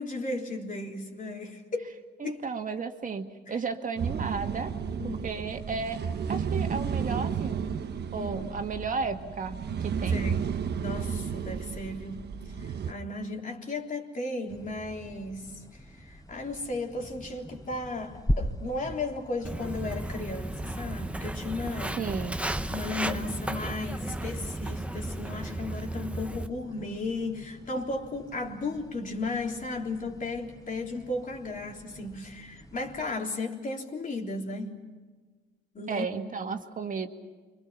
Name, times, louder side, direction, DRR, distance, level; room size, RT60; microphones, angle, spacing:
voice 1, 0.0-1.9 2.2-2.4 3.5-3.6 5.0-5.3 8.2-8.5 10.1-22.0 22.7-34.8 35.7-36.1, left 2 dB, 40° left, 1 dB, 3.7 m, -35 dB
voice 2, 2.2-4.7 5.0-6.0 6.3-7.7 8.1-10.3 22.0-22.4 35.9-37.1, right 5 dB, 40° right, 5 dB, 2.1 m, -33 dB
sound 1, 4.0-12.9, right 7 dB, 55° right, 1.3 m, -32 dB
sound 2, 14.5-33.1, equal, 20° left, 3.5 m, -41 dB
Walk footsteps, 19.4-26.5, right 1 dB, 5° right, 0.9 m, -34 dB
29.5 x 24.5 x 5.8 m, 1.4 s
cardioid pair, 90°, 20 cm